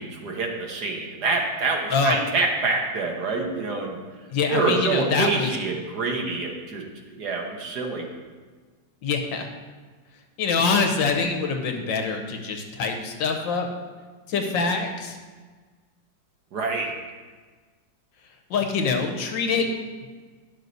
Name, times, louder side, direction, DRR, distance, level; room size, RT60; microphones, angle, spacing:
voice 1, 0.0-4.0 4.5-8.1 16.5-16.9, right 3 dB, 60° right, 1 dB, 1.6 m, -26 dB
voice 2, 4.3-5.6 9.0-9.5 10.4-13.7 14.3-15.2 18.5-19.6, left 4 dB, 75° left, 4 dB, 1.6 m, -24 dB
10.5 x 6.4 x 4.0 m, 1.4 s
omnidirectional pair, 2.1 m